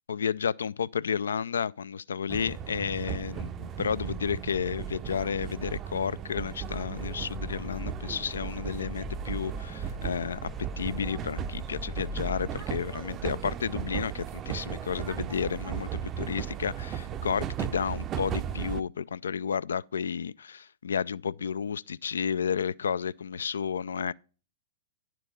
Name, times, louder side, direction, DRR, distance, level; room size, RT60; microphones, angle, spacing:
voice 1, 0.1-10.5 10.8-24.1, left 7 dB, 75° left, 0.3 m, -32 dB
sound 1, 2.3-18.8, right 9 dB, 30° right, 0.5 m, -36 dB
Train cabin by night wheels grind. Kazan - Yekaterinburg, 6.6-12.5, left 1 dB, 15° left, 0.7 m, -41 dB
10.5 x 4.5 x 5.1 m
figure-of-eight pair, 105°, 0 cm